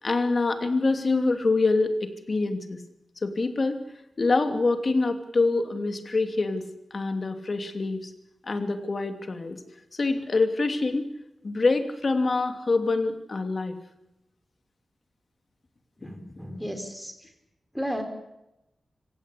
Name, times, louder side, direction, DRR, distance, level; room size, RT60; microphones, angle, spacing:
voice 1, 0.0-2.8 3.2-3.8 4.2-8.1 8.4-9.6 9.9-11.1 11.4-13.8, left 3 dB, 45° left, 7 dB, 2.8 m, -25 dB
voice 2, 16.0-17.1 17.7-18.0, equal, ahead, 7 dB, 4.5 m, -33 dB
25.5 x 17.0 x 8.5 m, 0.90 s
wide cardioid pair, 105°, 0 cm